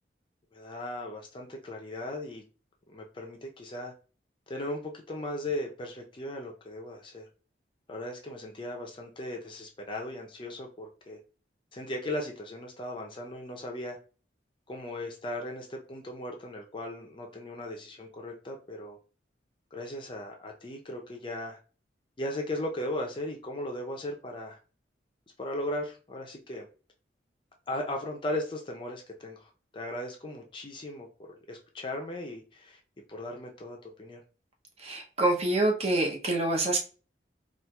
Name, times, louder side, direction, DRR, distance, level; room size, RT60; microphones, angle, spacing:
voice 1, 0.5-2.4 2.9-3.9 4.5-7.3 7.9-11.2 11.7-14.0 14.7-19.0 19.7-21.6 22.2-24.6 25.4-26.7 27.7-32.8 33.1-34.2, left 1 dB, 30° left, 0.5 m, -37 dB
voice 2, 34.8-36.8, right 2 dB, 35° right, 0.6 m, -26 dB
4.3 x 2.4 x 2.2 m
head